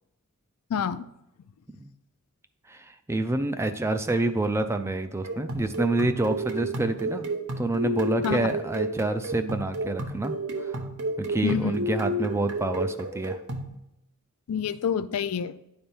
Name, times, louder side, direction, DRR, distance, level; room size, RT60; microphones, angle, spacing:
voice 1, 0.7-1.1 8.2-8.5 11.4-11.8 14.5-15.6, left 7 dB, 85° left, 13 dB, 0.4 m, -27 dB
voice 2, 2.7-7.3 7.6-10.8 11.2-13.4, right 2 dB, 10° right, 8 dB, 0.3 m, -28 dB
sound 1, 5.2-13.7, right 1 dB, 85° right, 0.8 m, -32 dB
10.0 x 3.4 x 4.4 m, 0.85 s
head